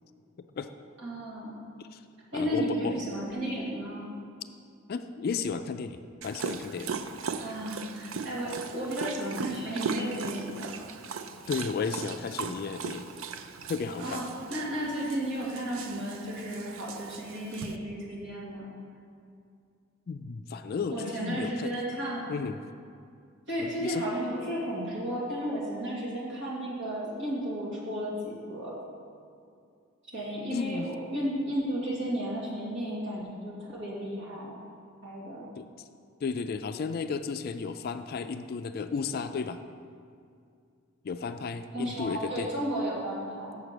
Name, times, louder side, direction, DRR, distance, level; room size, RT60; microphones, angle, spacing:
voice 1, 1.0-1.7 2.3-4.1 7.4-10.8 14.0-18.8 20.9-22.3 23.5-28.8 30.1-34.6 35.0-35.5 41.7-43.6, equal, 60° right, -6 dB, 2.3 m, -33 dB
voice 2, 2.3-3.0 4.9-6.9 11.5-13.1 13.7-14.2 20.1-21.7 22.3-22.6 23.6-24.0 30.5-30.9 35.6-35.7 36.2-39.6 41.0-42.5, left 5 dB, 45° left, 9 dB, 0.3 m, -33 dB
Dog, 6.2-17.8, right 5 dB, 80° right, 0.4 m, -38 dB
7.0 x 6.0 x 6.6 m, 2.4 s
head